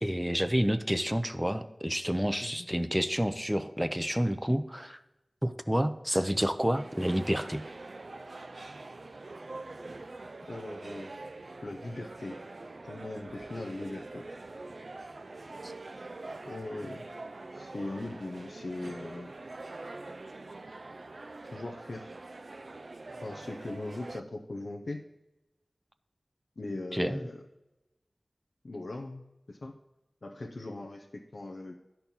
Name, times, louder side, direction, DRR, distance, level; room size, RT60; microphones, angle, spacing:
voice 1, 0.0-5.0 5.4-7.6 15.6-15.7 26.9-27.2, equal, 5° right, 10 dB, 0.5 m, -29 dB
sound 1, 6.7-24.2, right 2 dB, 65° right, 0.4 m, -44 dB
voice 2, 10.5-11.1 11.6-12.4 12.8-14.3 16.4-17.2 17.5-19.3 21.4-22.1 23.2-25.0 26.6-27.4 28.6-29.7 30.2-31.7, left 2 dB, 75° left, 1 dB, 0.7 m, -40 dB
11.5 x 4.5 x 5.4 m, 0.99 s
wide cardioid pair, 60°, 0 cm